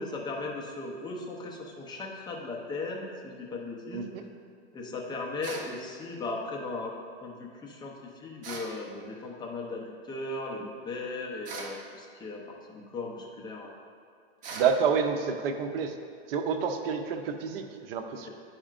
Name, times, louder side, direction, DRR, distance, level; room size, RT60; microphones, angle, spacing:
voice 1, 0.0-4.1 4.7-6.9 7.2-12.4 12.7-13.7 18.2-18.3, left 3 dB, 15° left, -1 dB, 0.7 m, -37 dB
voice 2, 3.9-4.2 14.5-15.9 16.3-18.3, right 6 dB, 60° right, 6 dB, 0.7 m, -29 dB
sound 1, 5.4-5.7 8.4-8.7 11.4-11.8 14.4-14.7, right 3 dB, 25° right, 0.7 m, -39 dB
10.0 x 4.3 x 2.5 m, 2.3 s
supercardioid pair, 145°, 32 cm